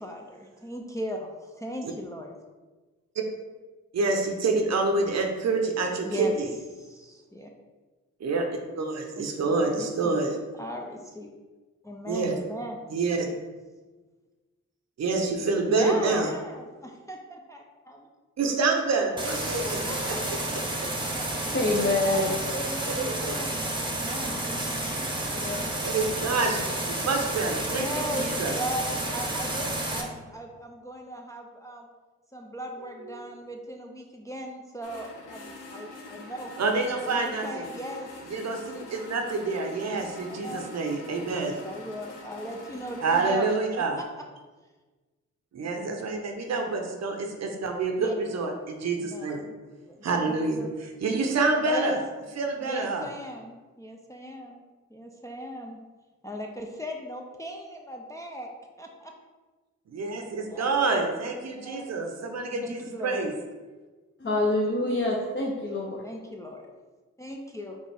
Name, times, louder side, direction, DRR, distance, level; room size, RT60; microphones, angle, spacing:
voice 1, 0.0-2.4 6.0-6.3 6.7-7.5 9.2-11.3 11.8-12.9 15.6-18.1 19.6-20.8 21.2-21.3 22.1-24.5 24.8-25.7 27.8-31.9 32.3-36.5 37.0-38.1 40.2-40.7 41.2-44.0 48.0-48.1 48.9-49.3 49.9-50.7 51.6-52.0 52.6-54.6 54.9-55.8 56.2-58.5 58.8-59.1 60.5-60.9 61.5-62.0 62.6-63.3 66.0-66.7 67.2-67.8, equal, 10° left, 0 dB, 0.4 m, -38 dB
voice 2, 3.9-6.5 8.2-8.5 8.8-10.4 12.1-12.3 12.9-13.3 15.0-16.3 18.4-20.1 22.9-23.3 25.8-28.5 33.2-33.3 36.6-37.6 38.3-41.6 43.0-44.0 45.5-49.4 50.0-50.6 51.0-52.0 52.4-53.0 59.9-63.3, right 3 dB, 55° right, 3 dB, 0.7 m, -27 dB
sound 1, 19.2-30.0, right 1 dB, 15° right, 0.9 m, -31 dB
voice 3, 21.5-22.3 64.2-66.0, left 2 dB, 35° left, -2 dB, 0.8 m, -25 dB
sound 2, 34.8-43.5, left 2 dB, 75° left, 0.8 m, -45 dB
4.3 x 2.4 x 3.4 m, 1.3 s
supercardioid pair, 45°, 32 cm